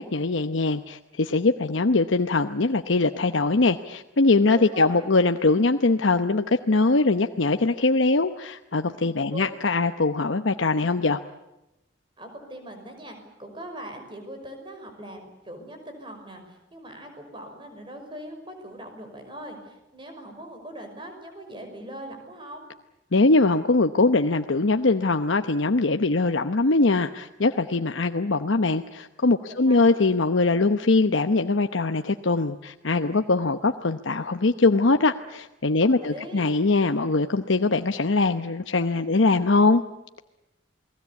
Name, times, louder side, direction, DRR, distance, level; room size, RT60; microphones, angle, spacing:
voice 1, 0.0-11.2 23.1-39.8, left 3 dB, 80° left, 7 dB, 0.9 m, -22 dB
voice 2, 4.5-5.0 9.3-9.5 12.2-22.7 29.6-30.0 36.0-36.5, right 1 dB, 25° right, 5 dB, 5.7 m, -41 dB
29.0 x 20.0 x 8.3 m, 0.94 s
head